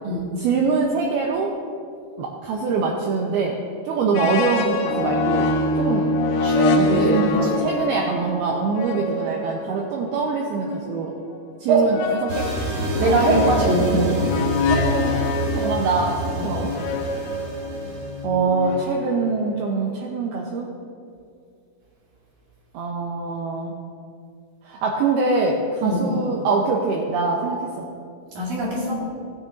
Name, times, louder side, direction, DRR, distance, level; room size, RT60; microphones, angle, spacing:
voice 1, 0.4-1.5 2.2-3.6 3.9-5.5 5.8-6.1 6.8-11.1 11.6-12.5 13.1-13.9 14.7-15.2 15.5-16.7 18.2-20.7 22.7-23.7 24.7-27.9, right 4 dB, 85° right, -1 dB, 2.3 m, -24 dB
sound 1, 4.1-10.9 11.9-19.3, left 2 dB, 80° left, 2.5 m, -25 dB
voice 2, 6.4-7.6 11.7-11.9 13.0-14.1 25.8-26.0 28.3-29.0, right 2 dB, 50° right, -5 dB, 2.9 m, -22 dB
sound 2, 12.3-18.3, right 2 dB, 65° right, 1.7 m, -28 dB
18.0 x 9.5 x 2.6 m, 2.4 s
omnidirectional pair, 5.3 m